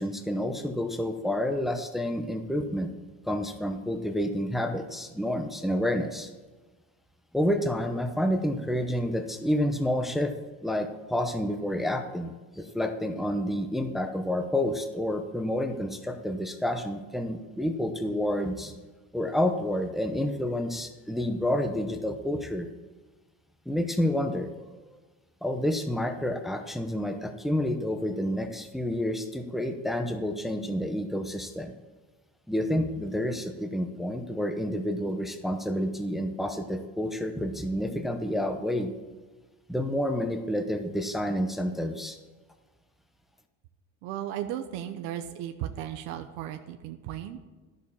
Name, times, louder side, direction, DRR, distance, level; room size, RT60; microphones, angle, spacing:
voice 1, 0.0-2.9 3.2-6.3 7.3-10.3 10.6-18.7 19.1-22.7 23.7-24.7 25.4-31.7 32.5-38.9 39.7-42.2, left 1 dB, ahead, 6 dB, 0.8 m, -29 dB
voice 2, 44.0-47.4, right 11 dB, 90° right, 5 dB, 0.9 m, -35 dB
11.0 x 6.5 x 7.1 m, 1.3 s
cardioid pair, 115°, 38 cm